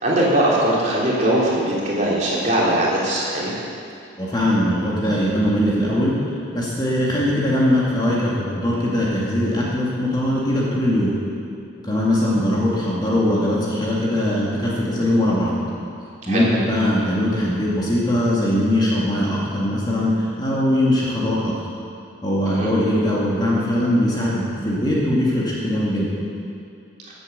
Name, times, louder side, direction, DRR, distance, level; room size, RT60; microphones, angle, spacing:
voice 1, 0.0-3.5 16.3-16.4 22.4-22.7, right 1 dB, 40° right, -6 dB, 3.2 m, -20 dB
voice 2, 4.2-6.1 6.5-11.1 11.8-15.5 16.3-21.5 22.2-26.1, left 1 dB, 20° left, -6 dB, 2.3 m, -21 dB
16.0 x 8.2 x 6.8 m, 2.4 s
head